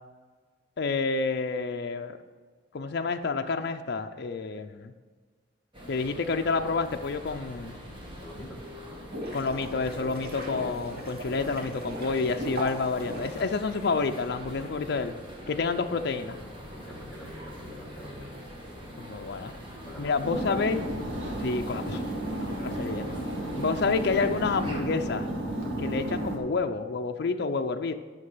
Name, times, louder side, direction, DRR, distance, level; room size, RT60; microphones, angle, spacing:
voice 1, 0.8-2.2 2.7-4.9 5.9-7.7 9.3-15.1 15.5-16.4 19.0-19.5 20.0-20.8 21.4-22.0 22.4-23.1 23.6-25.3 25.8-27.9, left 4 dB, 60° left, 5 dB, 0.5 m, -29 dB
sound 1, 5.7-24.8, equal, 25° right, 1.7 m, -44 dB
voice 2, 8.2-8.6 16.7-18.4 19.8-20.6, left 1 dB, 5° left, -4 dB, 1.9 m, -45 dB
sound 2, 8.8-14.2, equal, 55° right, 2.3 m, -38 dB
sound 3, 20.2-26.4, right 1 dB, 85° right, 1.7 m, -33 dB
9.8 x 6.6 x 5.5 m, 1.5 s
head